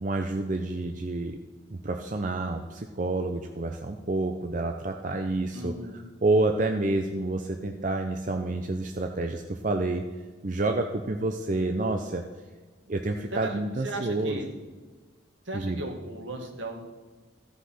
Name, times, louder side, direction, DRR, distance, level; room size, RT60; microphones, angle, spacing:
voice 1, 0.0-1.4 1.7-5.7 6.2-10.0 10.4-12.2 12.9-14.4 15.5-15.9, right 2 dB, 40° right, 4 dB, 0.6 m, -28 dB
voice 2, 5.5-6.1 13.3-14.5 15.5-16.8, right 2 dB, 75° right, 2 dB, 1.9 m, -36 dB
14.5 x 5.6 x 5.8 m, 1.4 s
head